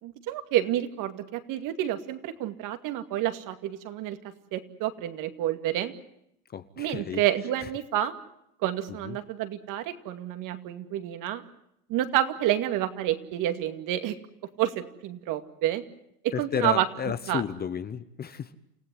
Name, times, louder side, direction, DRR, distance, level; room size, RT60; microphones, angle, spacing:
voice 1, 0.0-4.2 4.5-5.9 6.8-8.1 8.6-11.4 11.9-14.2 14.6-15.8 16.2-16.9 17.3-17.4, right 12 dB, 45° right, 9 dB, 2.4 m, -29 dB
voice 2, 6.5-7.2 7.6-7.7 8.9-9.2 16.3-18.6, left 8 dB, 20° left, 12 dB, 1.0 m, -32 dB
29.0 x 16.0 x 9.5 m, 0.77 s
hypercardioid pair, 115°, 44 cm